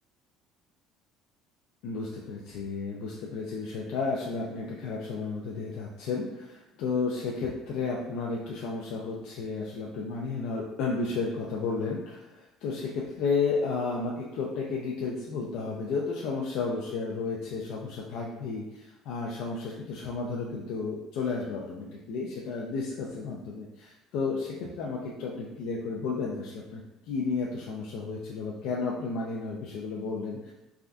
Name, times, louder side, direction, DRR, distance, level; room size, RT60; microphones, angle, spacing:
voice 1, 1.8-30.5, left 4 dB, 65° left, -2 dB, 0.3 m, -32 dB
3.4 x 2.2 x 2.4 m, 1.0 s
cardioid pair, 160°, 0 cm